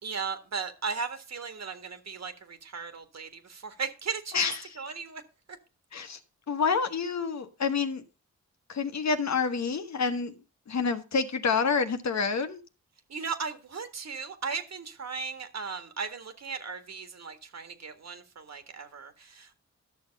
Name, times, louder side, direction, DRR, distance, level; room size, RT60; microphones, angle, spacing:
voice 1, 0.0-4.5 4.8-5.2 13.1-19.6, right 5 dB, 65° right, 1.8 m, -36 dB
voice 2, 4.3-4.7 5.9-6.2 6.5-8.0 8.7-10.4 10.7-12.6, left 5 dB, 65° left, 1.3 m, -28 dB
12.5 x 6.5 x 5.3 m
cardioid pair, 60°, 29 cm